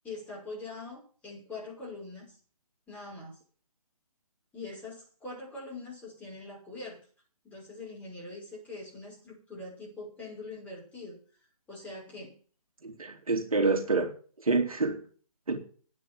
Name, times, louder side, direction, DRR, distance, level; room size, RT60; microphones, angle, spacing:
voice 1, 0.0-2.4 2.9-3.4 4.5-7.0 7.4-11.2 11.7-12.3, left 2 dB, 10° left, -4 dB, 6.0 m, -43 dB
voice 2, 12.8-14.1 14.4-15.0 15.5-15.6, right 3 dB, 70° right, 5 dB, 3.1 m, -27 dB
10.5 x 9.6 x 7.8 m, 0.42 s
figure-of-eight pair, 145°, 19 cm